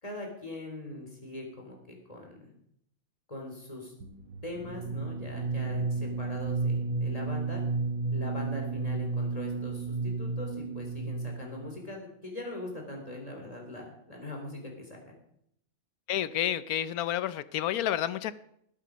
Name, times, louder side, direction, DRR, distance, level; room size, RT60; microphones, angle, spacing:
voice 1, 0.0-2.5 3.3-3.9 4.4-7.6 8.1-15.1, left 1 dB, 25° left, 1 dB, 3.6 m, -41 dB
sound 1, 4.0-11.7, right 3 dB, 75° right, 1.8 m, -32 dB
voice 2, 16.1-18.3, left 11 dB, 85° left, 16 dB, 1.2 m, -30 dB
19.0 x 8.5 x 5.1 m, 0.73 s
omnidirectional pair, 1.5 m